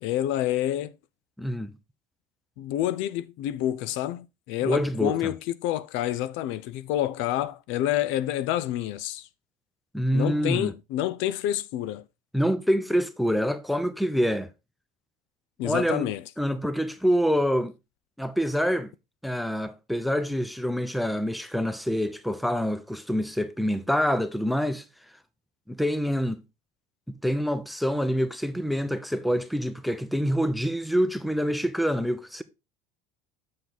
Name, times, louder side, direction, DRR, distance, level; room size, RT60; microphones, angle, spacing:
voice 1, 0.0-0.9 2.6-9.3 10.1-12.0 15.6-16.2, left 12 dB, 75° left, 0.5 m, -28 dB
voice 2, 1.4-1.7 4.6-5.2 9.9-10.7 12.3-14.5 15.6-16.1 16.4-17.7 18.2-18.9 19.2-24.8 25.7-26.4 27.1-32.4, equal, ahead, 0.7 m, -26 dB
7.5 x 4.8 x 3.9 m
cardioid pair, 110°, 20 cm